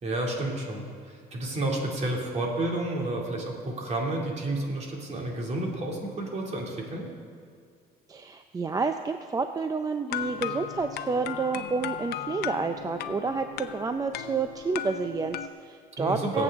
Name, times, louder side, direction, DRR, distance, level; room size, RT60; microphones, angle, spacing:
voice 1, 0.0-7.1 16.0-16.4, right 2 dB, 40° right, -1 dB, 2.6 m, -30 dB
voice 2, 8.1-16.4, right 4 dB, 20° right, 7 dB, 0.5 m, -30 dB
sound 1, 10.1-15.5, left 10 dB, 70° left, 0.6 m, -36 dB
22.5 x 8.0 x 3.6 m, 2.2 s
cardioid pair, 110°, 17 cm